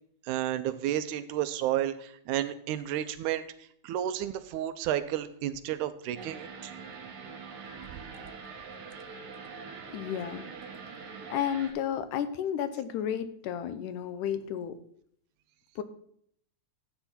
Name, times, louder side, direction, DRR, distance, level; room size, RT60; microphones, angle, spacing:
voice 1, 0.3-3.4 3.8-6.7, right 12 dB, 90° right, 11 dB, 2.1 m, -31 dB
sound 1, 6.2-11.7, right 5 dB, 70° right, 2.9 m, -44 dB
voice 2, 9.9-10.4 11.3-14.8 15.8-15.9, left 9 dB, 90° left, 12 dB, 2.3 m, -32 dB
12.0 x 8.0 x 4.3 m, 0.66 s
omnidirectional pair, 3.5 m